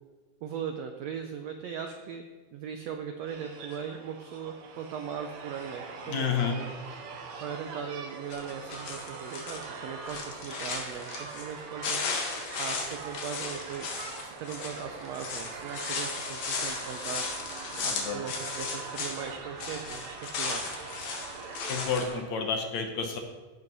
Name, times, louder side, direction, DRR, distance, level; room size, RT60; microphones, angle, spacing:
voice 1, 0.4-2.2 2.5-6.7 7.4-12.0 12.6-13.9 14.2-17.2 17.8-20.1 20.3-20.7, right 7 dB, 80° right, 5 dB, 1.5 m, -39 dB
sound 1, 3.3-22.2, right 4 dB, 65° right, 2.3 m, -42 dB
voice 2, 6.1-6.6 17.9-18.2 21.7-23.2, left 6 dB, 65° left, 4 dB, 2.1 m, -30 dB
sound 2, 8.3-9.6 10.0-11.5 11.8-19.3 19.6-22.0, left 4 dB, 85° left, 3.4 m, -35 dB
16.5 x 5.6 x 5.4 m, 1.4 s
omnidirectional pair, 3.8 m